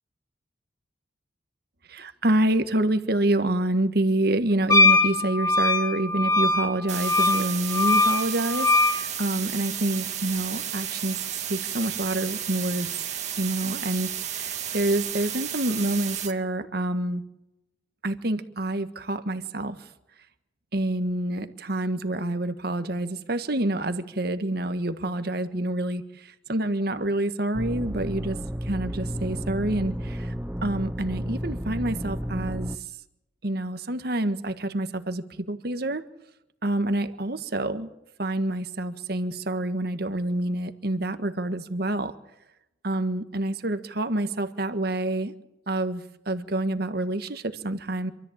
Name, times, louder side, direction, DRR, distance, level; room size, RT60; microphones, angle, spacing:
voice 1, 1.9-11.2 11.5-12.9 13.4-17.2 18.0-19.7 20.7-26.0 26.5-28.4 28.6-30.3 30.6-32.7 33.4-36.0 36.6-37.9 38.2-42.1 42.8-45.3 45.7-48.1, right 1 dB, 55° right, 9 dB, 1.5 m, -27 dB
Wind instrument woodwind instrument, 4.7-9.0, left 2 dB, 20° left, 3.2 m, -21 dB
sound 1, 6.9-16.3, right 10 dB, 35° right, 2.2 m, -33 dB
sound 2, 27.5-32.8, equal, 5° right, 0.8 m, -32 dB
26.5 x 13.5 x 8.7 m, 0.91 s
head